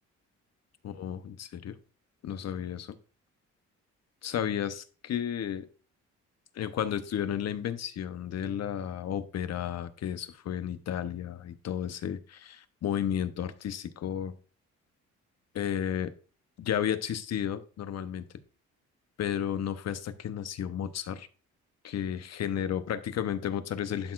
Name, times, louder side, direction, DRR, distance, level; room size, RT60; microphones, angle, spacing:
voice 1, 0.8-1.8 2.2-3.0 4.2-5.7 6.5-14.3 15.5-16.1 16.6-18.2 19.2-21.3 21.8-24.1, left 9 dB, 60° left, 11 dB, 0.8 m, -33 dB
11.5 x 4.3 x 2.4 m, 0.39 s
cardioid pair, 90°, 30 cm